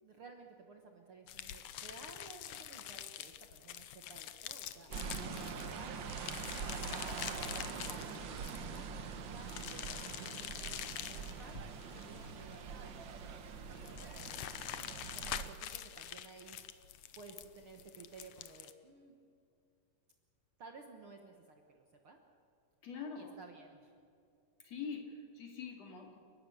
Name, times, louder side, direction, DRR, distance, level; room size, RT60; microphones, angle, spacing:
voice 1, 0.0-6.3 6.8-11.6 11.9-14.2 14.6-16.6 17.1-19.1 20.6-22.2 23.2-23.9, right 4 dB, 55° right, 3 dB, 1.8 m, -55 dB
sound 1, 1.3-18.7, left 11 dB, 75° left, 1.5 m, -46 dB
sound 2, 4.9-15.5, right 6 dB, 90° right, 1.0 m, -44 dB
voice 2, 22.8-23.4 24.6-26.2, left 5 dB, 55° left, 2 dB, 3.4 m, -44 dB
30.0 x 12.0 x 8.4 m, 2.5 s
omnidirectional pair, 3.8 m